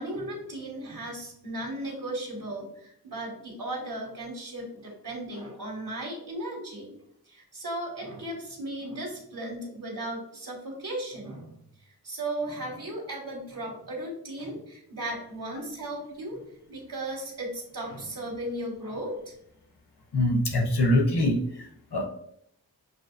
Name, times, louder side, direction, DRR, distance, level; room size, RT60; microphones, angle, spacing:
voice 1, 0.0-6.9 7.3-11.5 12.0-16.4 16.7-19.2, right 1 dB, 70° right, -3 dB, 1.6 m, -36 dB
voice 2, 20.1-22.1, left 1 dB, 80° left, 1 dB, 1.0 m, -24 dB
7.6 x 2.6 x 2.4 m, 0.69 s
wide cardioid pair, 50°, 39 cm